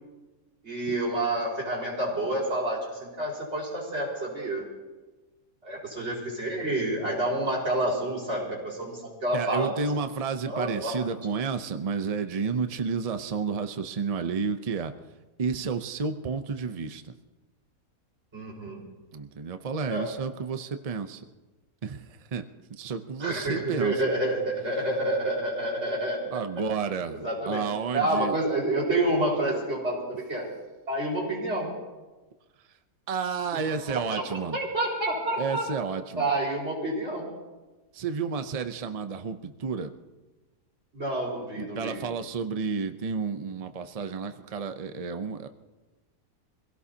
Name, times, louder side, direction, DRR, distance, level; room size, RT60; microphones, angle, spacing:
voice 1, 0.6-4.6 5.6-9.7 10.4-11.0 18.3-18.8 19.9-20.1 23.2-26.4 27.1-27.6 27.9-30.5 30.9-31.7 33.5-34.2 34.5-35.6 36.2-37.3 40.9-42.0, right 1 dB, 40° right, -4 dB, 5.0 m, -29 dB
voice 2, 9.3-14.9 15.4-17.1 19.1-21.2 21.8-23.9 26.3-28.4 33.1-34.6 35.4-36.3 37.9-39.9 41.5-45.5, right 5 dB, 70° right, 8 dB, 0.3 m, -31 dB
26.0 x 17.0 x 2.8 m, 1.2 s
omnidirectional pair, 1.7 m